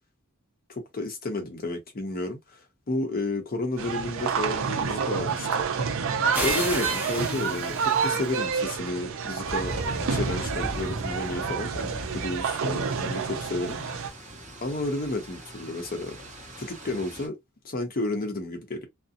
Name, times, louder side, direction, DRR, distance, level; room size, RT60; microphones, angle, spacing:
voice 1, 0.7-5.6 6.4-9.7 10.1-13.8 14.6-16.2 16.6-17.4 17.6-18.8, left 2 dB, 45° left, 0.6 m, -32 dB
sound 1, 3.8-14.1, right 6 dB, 65° right, 0.5 m, -28 dB
sound 2, 6.3-8.4, right 1 dB, 10° right, 0.8 m, -32 dB
sound 3, 9.4-17.3, right 1 dB, 35° right, 1.0 m, -39 dB
2.6 x 2.0 x 2.5 m
head